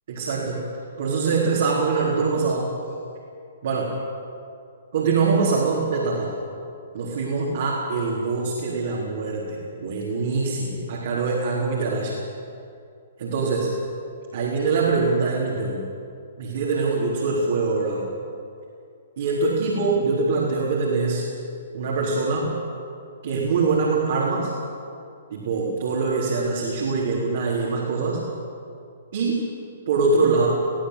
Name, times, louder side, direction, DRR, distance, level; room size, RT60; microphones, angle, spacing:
voice 1, 0.1-0.6 1.0-2.7 3.6-3.9 4.9-6.3 6.9-12.2 13.2-13.7 14.3-15.8 16.4-18.0 19.2-21.2 21.7-22.5 23.2-24.5 25.3-28.2 29.1-29.6 29.9-30.5, right 4 dB, 50° right, -4 dB, 4.2 m, -23 dB
21.5 x 17.0 x 8.2 m, 2.4 s
figure-of-eight pair, 120°, 0 cm